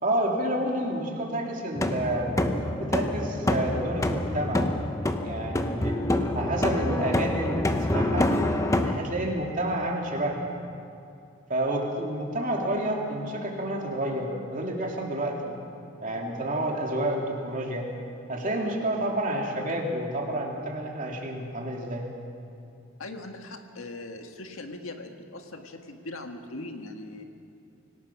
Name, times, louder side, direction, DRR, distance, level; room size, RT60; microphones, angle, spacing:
voice 1, 0.0-2.3 2.7-4.6 5.2-6.0 6.3-8.3 8.9-10.5 11.5-15.6 16.0-17.9 18.3-22.1, right 1 dB, 40° right, 0 dB, 2.8 m, -29 dB
sound 1, 1.7-8.9, left 1 dB, 15° left, 0.9 m, -27 dB
voice 2, 23.0-27.2, left 2 dB, 75° left, 4 dB, 1.7 m, -40 dB
26.0 x 18.0 x 6.0 m, 2.6 s
head